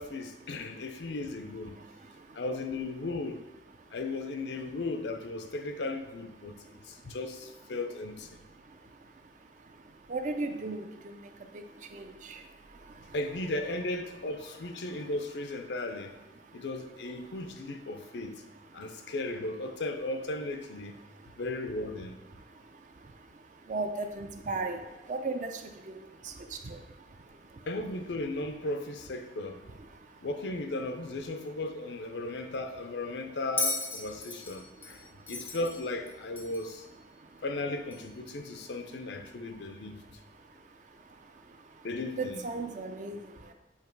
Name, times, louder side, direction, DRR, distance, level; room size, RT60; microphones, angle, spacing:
voice 1, 0.0-1.8 2.3-3.4 3.9-8.3 13.1-16.1 16.5-18.4 18.7-21.0 21.4-22.2 27.7-29.7 30.2-36.9 37.4-40.0 41.8-42.4, left 2 dB, 80° left, 0.5 m, -36 dB
voice 2, 10.1-10.8 23.7-24.8 25.1-25.5 25.9-26.0 26.7-26.8 42.2-43.2, right 3 dB, 45° right, 0.5 m, -33 dB
Bell, 33.6-36.8 37.9-38.0, left 3 dB, 10° left, 0.5 m, -35 dB
7.3 x 2.9 x 4.5 m
head